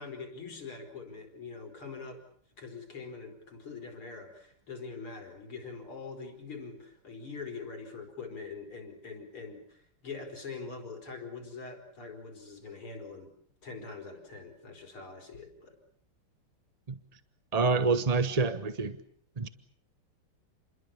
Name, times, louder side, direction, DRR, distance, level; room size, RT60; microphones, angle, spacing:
voice 1, 0.0-2.2 2.6-13.3 13.6-15.8, left 4 dB, 80° left, 4 dB, 5.8 m, -43 dB
voice 2, 17.5-19.0 19.4-19.5, right 4 dB, 30° right, 10 dB, 0.7 m, -27 dB
29.0 x 22.0 x 7.1 m, 0.63 s
omnidirectional pair, 2.4 m